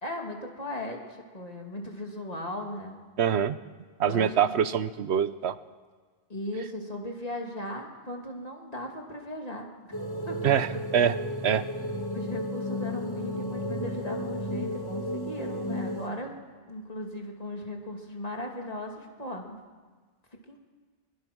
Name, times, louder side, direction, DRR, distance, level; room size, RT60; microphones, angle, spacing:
voice 1, 0.0-3.0 4.0-4.7 6.3-10.0 10.3-10.4 12.1-16.3 16.7-19.6 20.5-20.6, left 1 dB, 35° left, 1 dB, 2.7 m, -37 dB
voice 2, 3.2-3.6 4.0-5.5 10.4-11.2 11.4-11.6, right 8 dB, 70° right, 14 dB, 1.1 m, -24 dB
sound 1, 9.9-16.1, equal, 20° left, 2.3 m, -33 dB
22.5 x 20.0 x 6.2 m, 1.4 s
omnidirectional pair, 1.2 m